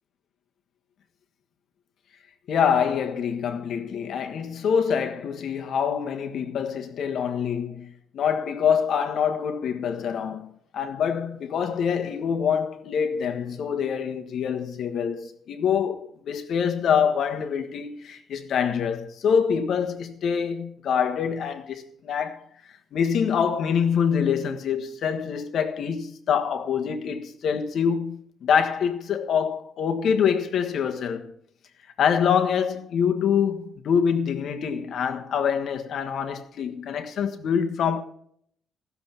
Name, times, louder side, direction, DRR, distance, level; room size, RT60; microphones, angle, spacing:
voice 1, 2.5-22.4 22.9-31.3 32.0-38.0, left 7 dB, 70° left, 1.4 m, -25 dB
15.5 x 7.1 x 5.9 m
cardioid pair, 100°, 0 cm